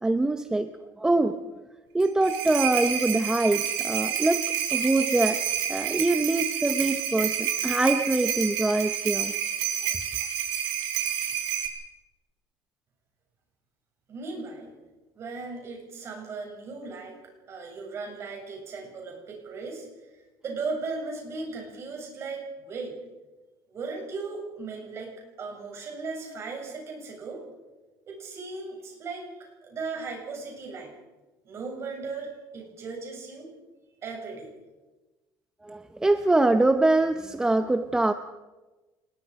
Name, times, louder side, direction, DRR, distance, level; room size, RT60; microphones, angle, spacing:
voice 1, 0.0-0.7 1.0-1.4 1.9-5.4 5.7-9.3 35.6-38.1, right 2 dB, 10° right, 8 dB, 0.7 m, -24 dB
sound 1, 2.0-11.7, right 9 dB, 85° right, 4.1 m, -29 dB
voice 2, 14.1-14.7 15.2-17.1 17.5-19.9 20.4-23.0 23.7-25.1 25.4-27.4 28.1-30.9 31.5-33.5 34.0-34.5, right 4 dB, 35° right, 1 dB, 7.5 m, -37 dB
26.5 x 21.0 x 5.3 m, 1.2 s
cardioid pair, 155°, 8 cm